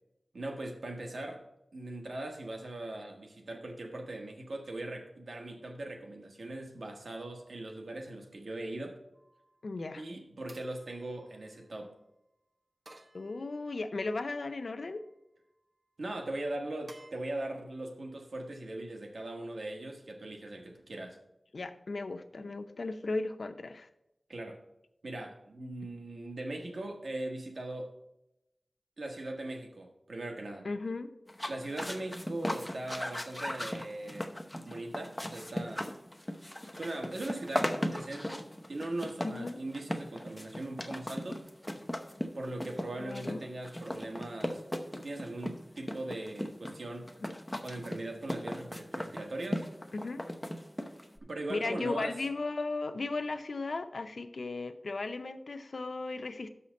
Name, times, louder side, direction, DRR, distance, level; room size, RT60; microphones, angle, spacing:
voice 1, 0.3-1.4 1.7-8.9 10.0-11.9 16.0-21.2 24.3-24.6 25.0-27.9 29.0-30.7 31.5-34.3 34.6-35.9 36.7-41.4 42.3-44.6 45.0-47.1 47.6-49.7 51.2-52.1, right 2 dB, 85° right, 3 dB, 1.2 m, -40 dB
sound 1, 9.1-9.6 10.5-11.8 12.9-13.9 14.5-15.1 16.9-17.1, right 1 dB, 55° right, 1.0 m, -57 dB
voice 2, 9.6-10.0 13.1-15.0 21.5-23.9 30.6-31.1 32.3-32.6 39.2-39.6 43.0-43.4 47.2-47.3 49.9-50.3 51.5-56.5, left 3 dB, 80° left, 8 dB, 0.6 m, -36 dB
sound 2, 31.3-51.2, left 1 dB, 15° left, 0.8 m, -38 dB
6.5 x 5.6 x 6.2 m, 0.87 s
wide cardioid pair, 60°, 0 cm